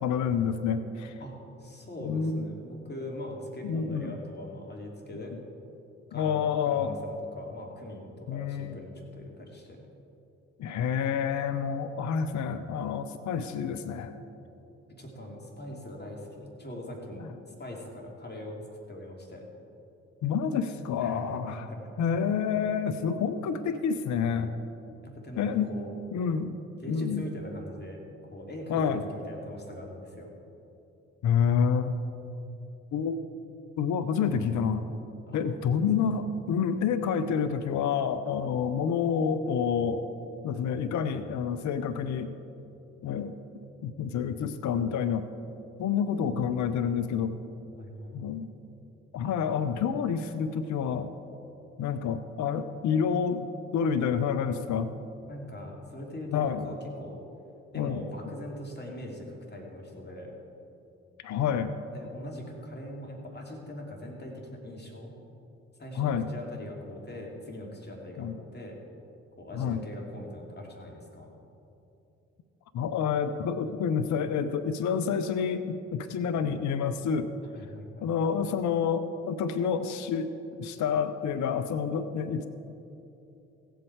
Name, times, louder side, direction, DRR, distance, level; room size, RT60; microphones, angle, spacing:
voice 1, 0.0-1.2 2.0-2.5 3.6-4.1 6.1-7.0 8.3-8.8 10.6-14.1 17.2-17.3 20.2-21.7 22.0-24.5 25.4-25.7 26.1-26.6 26.9-27.2 28.7-29.0 31.2-31.9 32.9-33.2 33.8-34.9 35.3-40.0 40.4-42.3 43.0-43.3 43.8-45.3 45.8-47.3 48.1-48.5 49.1-51.1 51.8-54.9 56.3-56.7 57.7-58.0 61.2-61.7 66.0-66.3 68.2-68.3 69.5-69.8 72.7-77.3 78.0-82.5, left 7 dB, 55° left, 10 dB, 0.7 m, -28 dB
voice 2, 1.2-5.3 6.1-6.4 6.6-9.8 15.0-17.3 17.6-18.6 18.9-19.4 21.0-21.9 25.0-26.0 26.8-28.0 28.3-30.3 35.3-35.4 47.7-48.4 49.2-49.3 55.3-57.2 57.7-60.3 61.9-65.1 65.8-68.8 69.4-71.3 77.5-78.1, left 1 dB, 30° left, -1 dB, 2.8 m, -41 dB
16.0 x 8.0 x 4.7 m, 2.8 s
hypercardioid pair, 45°, 35 cm